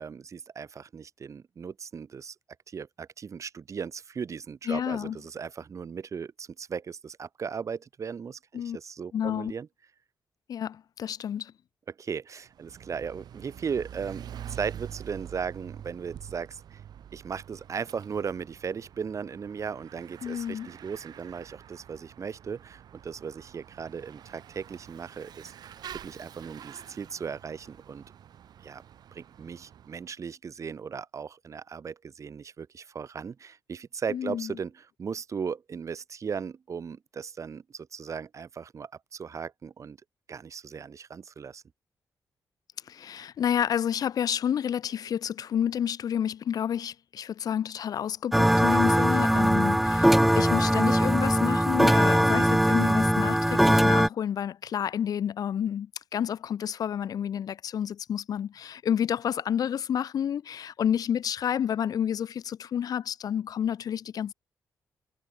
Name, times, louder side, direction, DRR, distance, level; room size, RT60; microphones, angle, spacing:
voice 1, 0.0-2.4 2.7-9.7 11.9-16.8 17.1-25.8 26.0-28.0 28.6-28.8 29.1-40.0 40.3-41.6, right 6 dB, 50° right, 1.9 m, -37 dB
voice 2, 4.7-5.2 8.5-8.8 9.1-9.5 10.5-11.5 20.2-20.7 34.1-34.6 42.9-64.3, left 9 dB, 65° left, 0.5 m, -30 dB
Bicycle / Mechanisms, 12.5-30.1, right 9 dB, 80° right, 3.4 m, -46 dB
sound 1, 48.3-54.1, equal, ahead, 0.5 m, -21 dB
cardioid pair, 110°, 7 cm